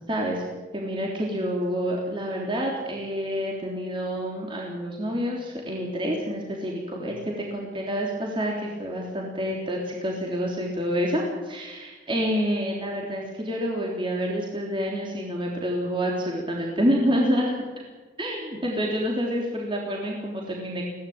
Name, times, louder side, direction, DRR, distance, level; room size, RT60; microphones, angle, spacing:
voice 1, 0.1-0.4 0.7-17.5 18.2-20.8, equal, 25° right, -1 dB, 3.5 m, -28 dB
23.0 x 17.0 x 8.9 m, 1.3 s
head